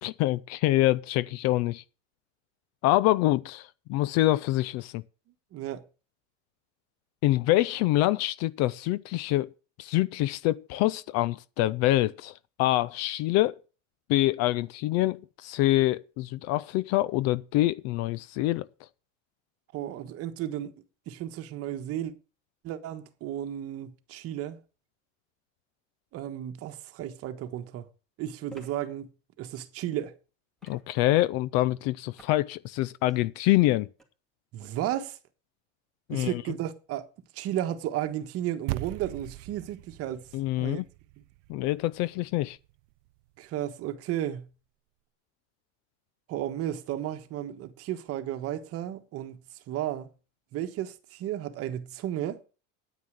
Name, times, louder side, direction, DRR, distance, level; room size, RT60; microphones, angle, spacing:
voice 1, 0.0-1.8 2.8-5.0 7.2-9.5 9.8-13.6 14.1-18.7 30.6-33.9 36.1-36.4 40.3-40.9 41.5-42.6, left 16 dB, 45° left, 0.5 m, -25 dB
voice 2, 5.5-5.8 19.7-20.7 21.1-22.1 22.6-24.6 26.1-27.9 28.2-29.1 29.4-30.1 34.5-35.2 36.1-37.1 37.3-40.3 40.6-40.8 43.4-44.4 46.3-49.4 49.7-50.1 50.5-52.4, right 12 dB, 40° right, 1.4 m, -33 dB
sound 1, 28.5-28.7 30.6-31.1 32.2-32.4 32.9-33.2 34.0-34.1, right 2 dB, ahead, 2.4 m, -51 dB
sound 2, 38.7-43.2, right 20 dB, 75° right, 0.7 m, -40 dB
9.4 x 9.4 x 6.4 m
cardioid pair, 155°, 37 cm